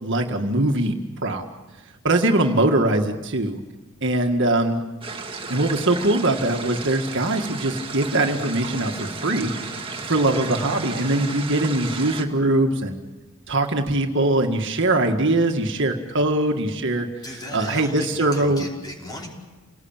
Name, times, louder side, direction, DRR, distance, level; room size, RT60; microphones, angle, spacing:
voice 1, 0.0-1.5 2.0-3.6 4.0-4.8 5.5-9.5 10.1-13.0 13.5-17.1 17.5-18.7, right 2 dB, 55° right, 4 dB, 1.9 m, -22 dB
sound 1, 5.0-12.2, right 4 dB, 25° right, 2.0 m, -33 dB
voice 2, 17.2-19.3, left 1 dB, 15° left, -1 dB, 5.3 m, -36 dB
29.0 x 19.5 x 8.9 m, 1.1 s
head